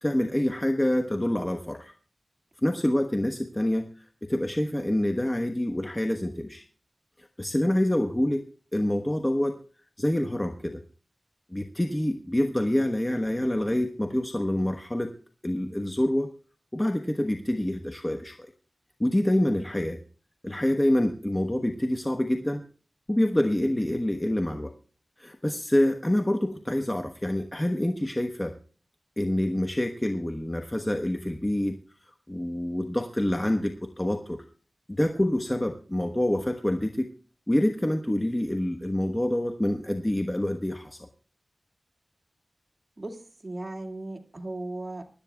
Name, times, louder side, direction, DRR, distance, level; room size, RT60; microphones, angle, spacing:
voice 1, 0.0-2.0 2.6-6.6 7.2-8.4 8.7-9.6 10.0-10.8 11.5-15.1 15.4-16.3 16.7-18.5 19.0-20.0 20.4-22.6 23.1-24.7 25.2-28.6 29.2-31.8 32.0-34.4 34.9-37.1 37.5-41.1, left 1 dB, 20° left, 5 dB, 1.1 m, -26 dB
voice 2, 43.0-45.1, right 2 dB, 35° right, 3 dB, 2.1 m, -37 dB
24.0 x 12.0 x 2.3 m, 0.38 s
cardioid pair, 45°, 0 cm